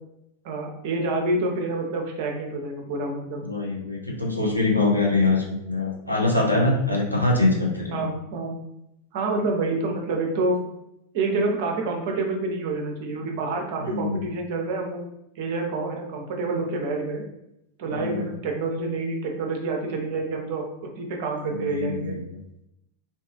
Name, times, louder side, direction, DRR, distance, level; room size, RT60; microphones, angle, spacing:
voice 1, 0.4-3.5 7.9-8.6 9.1-10.6 11.1-15.0 15.4-17.2 17.8-20.6 21.0-22.2, right 3 dB, 50° right, 1 dB, 0.5 m, -27 dB
voice 2, 3.4-8.1 13.8-14.3 17.9-18.3 21.5-22.2, left 2 dB, 90° left, -2 dB, 0.5 m, -24 dB
2.6 x 2.3 x 2.3 m, 0.82 s
figure-of-eight pair, 90°, 0 cm